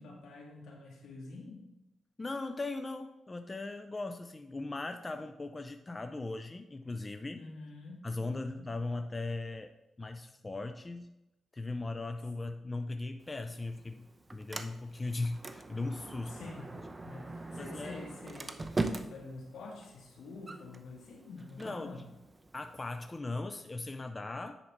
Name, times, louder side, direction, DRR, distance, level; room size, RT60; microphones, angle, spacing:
voice 1, 0.0-1.6 7.4-8.7 16.3-16.6 17.0-22.0, left 3 dB, 80° left, -1 dB, 1.9 m, -47 dB
voice 2, 2.2-7.4 8.0-9.7 10.0-11.1 11.5-16.5 17.6-18.0 21.6-22.0 22.5-24.6, left 2 dB, 30° left, 7 dB, 0.6 m, -38 dB
Sliding door, 13.2-23.2, right 2 dB, 30° right, 0.7 m, -42 dB
9.8 x 4.3 x 4.4 m, 0.93 s
cardioid pair, 60°, 0 cm